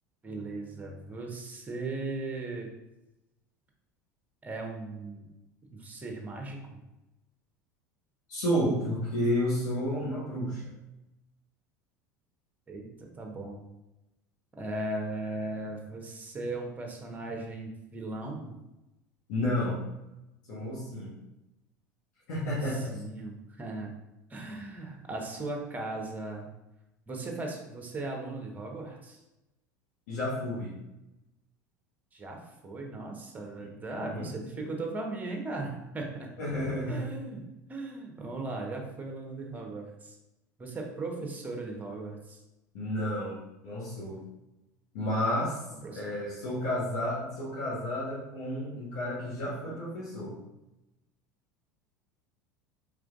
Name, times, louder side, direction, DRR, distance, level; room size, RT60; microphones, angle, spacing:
voice 1, 0.2-2.7 4.4-5.3 5.7-6.8 12.7-12.9 13.2-13.6 14.6-18.5 22.6-23.9 24.3-26.5 27.1-29.2 32.1-32.4 32.6-36.3 36.9-37.4 37.7-40.2 40.6-42.4 45.7-46.2, right 2 dB, 15° right, 1 dB, 1.0 m, -37 dB
voice 2, 8.3-10.6 19.3-19.8 20.5-21.2 22.3-23.0 30.1-30.8 34.0-34.3 36.4-37.1 42.7-44.2 44.9-45.6 45.9-50.4, equal, 55° left, -7 dB, 1.2 m, -31 dB
4.8 x 3.8 x 2.4 m, 0.95 s
figure-of-eight pair, 75°, 10 cm